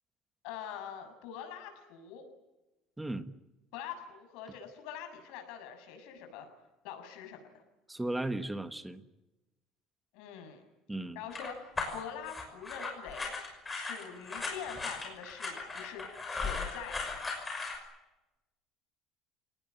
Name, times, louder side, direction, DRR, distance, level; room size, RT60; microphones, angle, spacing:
voice 1, 0.4-2.2 3.7-6.5 6.8-7.5 10.1-10.6 11.2-13.3 13.7-17.1, left 8 dB, 75° left, 5 dB, 7.0 m, -44 dB
voice 2, 7.9-9.0 10.9-11.2, right 1 dB, 5° right, 10 dB, 1.3 m, -35 dB
sound 1, 11.3-17.8, left 4 dB, 10° left, 5.9 m, -37 dB
28.5 x 18.5 x 9.6 m, 1.0 s
cardioid pair, 175°, 0 cm